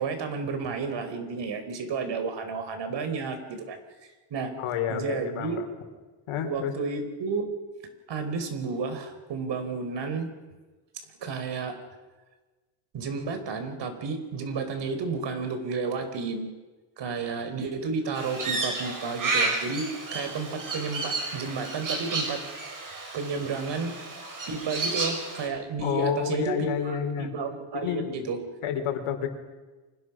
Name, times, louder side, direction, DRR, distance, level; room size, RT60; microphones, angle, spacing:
voice 1, 0.0-3.8 4.3-4.5 4.9-5.6 6.4-7.5 8.1-10.3 10.9-11.8 12.9-16.5 17.0-22.4 23.1-24.1 24.5-28.4, right 4 dB, 55° right, 8 dB, 4.7 m, -32 dB
voice 2, 4.6-5.7 6.3-6.7 25.8-27.3 27.7-28.3 28.6-29.3, left 8 dB, 90° left, 5 dB, 4.4 m, -29 dB
Crow, 18.1-25.5, right 3 dB, 40° right, 7.3 m, -32 dB
29.5 x 26.0 x 6.3 m, 1.2 s
cardioid pair, 135°, 49 cm